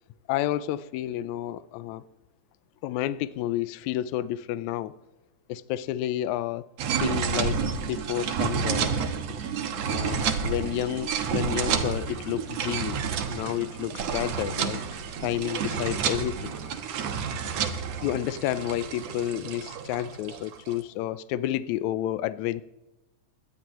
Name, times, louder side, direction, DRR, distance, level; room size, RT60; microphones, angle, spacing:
voice 1, 0.3-2.0 2.8-5.0 5.5-6.7 7.0-9.0 9.9-13.0 13.3-14.8 15.2-16.5 18.0-22.6, left 13 dB, 80° left, 1.9 m, -30 dB
sound 1, 6.8-20.7, right 6 dB, 65° right, 2.3 m, -30 dB
22.0 x 18.0 x 3.1 m
omnidirectional pair, 3.5 m